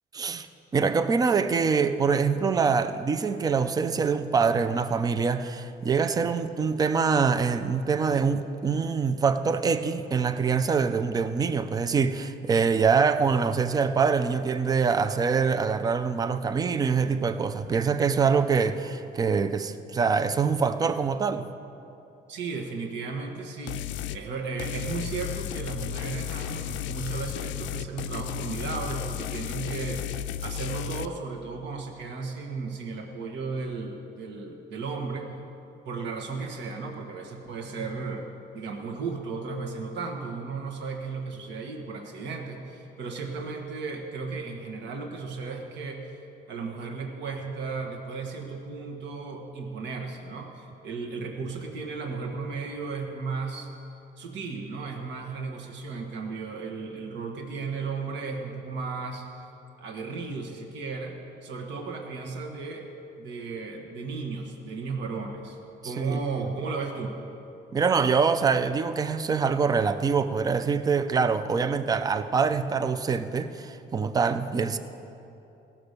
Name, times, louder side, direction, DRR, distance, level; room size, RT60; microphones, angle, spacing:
voice 1, 0.1-0.5 0.7-21.5 65.8-66.2 67.7-74.8, right 5 dB, 20° right, 0.4 m, -24 dB
voice 2, 22.3-30.1 30.4-35.3 35.8-46.1 46.5-53.7 54.2-59.2 59.8-62.9 63.2-65.6 65.8-67.2, right 4 dB, 65° right, 1.3 m, -35 dB
sound 1, 23.7-24.2 24.6-31.1, left 12 dB, 70° left, 0.4 m, -34 dB
17.0 x 6.0 x 6.6 m
cardioid pair, 170°, 20 cm